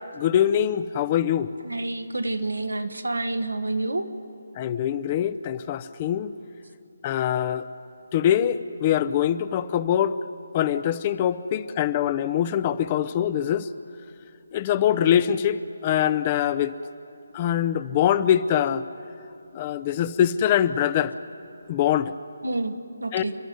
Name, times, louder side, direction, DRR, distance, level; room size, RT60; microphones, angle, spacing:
voice 1, 0.2-1.5 4.6-6.3 7.0-7.7 8.1-10.2 10.5-13.7 14.5-16.7 17.3-18.8 19.5-21.1 21.7-22.1 23.1-23.2, left 10 dB, 30° left, 13 dB, 0.7 m, -23 dB
voice 2, 1.6-4.1 22.4-23.4, right 2 dB, 80° right, 7 dB, 1.7 m, -28 dB
29.5 x 12.0 x 9.4 m, 2.5 s
figure-of-eight pair, 150°, 0 cm